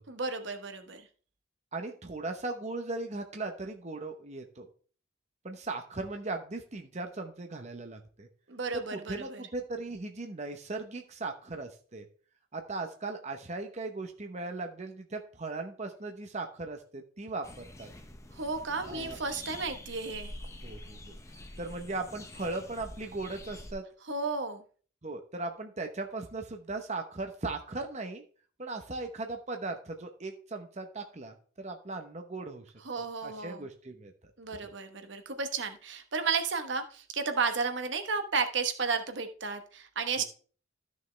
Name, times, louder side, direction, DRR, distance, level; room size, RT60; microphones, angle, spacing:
voice 1, 0.1-1.0 8.5-9.4 18.4-20.3 24.1-24.6 32.8-33.6 34.4-40.2, right 4 dB, 60° right, 7 dB, 1.1 m, -33 dB
voice 2, 1.7-4.7 5.4-8.3 8.9-12.1 12.5-17.9 18.8-19.2 20.6-21.2 21.6-23.8 25.0-28.2 28.6-32.6 33.0-34.1 34.6-34.7 40.2-40.3, right 3 dB, 35° right, 4 dB, 0.9 m, -38 dB
sound 1, 17.4-23.7, left 1 dB, 15° left, 0.8 m, -46 dB
13.0 x 6.4 x 3.3 m, 0.41 s
head